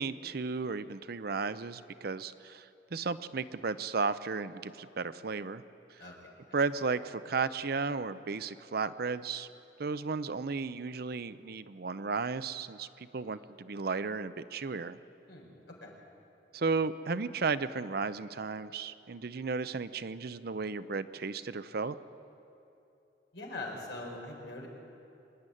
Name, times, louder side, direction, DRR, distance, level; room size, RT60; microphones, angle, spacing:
voice 1, 0.0-5.6 6.5-9.5 9.8-15.0 16.5-22.0, right 4 dB, 55° right, 13 dB, 0.6 m, -34 dB
voice 2, 6.0-6.3 15.3-15.5 15.8-15.9 23.3-24.7, left 2 dB, 70° left, -1 dB, 4.5 m, -42 dB
25.5 x 10.5 x 9.9 m, 2.8 s
head